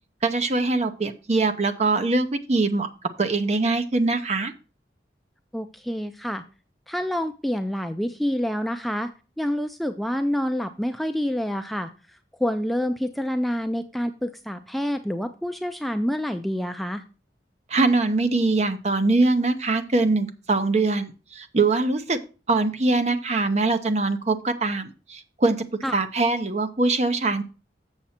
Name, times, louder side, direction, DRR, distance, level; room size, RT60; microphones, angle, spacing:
voice 1, 0.2-2.9 3.2-4.5 17.7-22.2 22.5-25.7 25.9-27.4, right 3 dB, 40° right, 8 dB, 0.7 m, -23 dB
voice 2, 5.5-6.4 6.9-9.1 9.4-11.9 12.4-17.0 25.8-26.0, equal, ahead, 7 dB, 0.3 m, -27 dB
7.3 x 6.7 x 4.3 m, 0.34 s
head